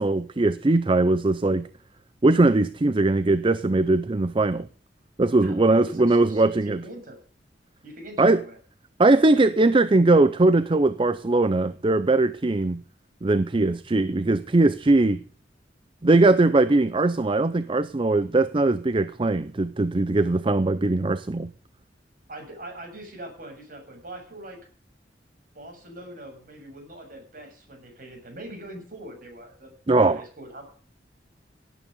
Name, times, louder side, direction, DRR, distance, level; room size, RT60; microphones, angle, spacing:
voice 1, 0.0-1.7 2.2-4.7 5.2-6.8 8.2-8.4 9.0-12.8 13.2-15.2 16.0-21.5 29.9-30.2, right 2 dB, 30° right, 0.5 m, -20 dB
voice 2, 5.4-7.2 7.8-8.6 22.3-24.6 25.5-30.6, right 1 dB, 50° right, 7.2 m, -42 dB
17.5 x 9.3 x 5.3 m
head